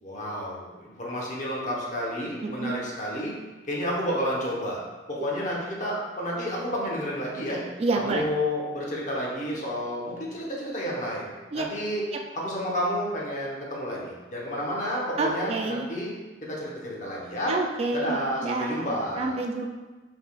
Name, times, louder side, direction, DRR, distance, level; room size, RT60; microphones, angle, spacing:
voice 1, 0.0-3.3 3.7-4.8 5.1-7.6 7.9-11.3 11.5-12.0 12.3-16.2 16.5-17.6 17.9-19.4, equal, 45° left, -4 dB, 1.0 m, -30 dB
voice 2, 7.8-8.2 11.5-11.7 15.2-15.9 17.5-19.7, right 3 dB, 35° right, 2 dB, 0.3 m, -28 dB
5.2 x 3.7 x 2.4 m, 1.2 s
head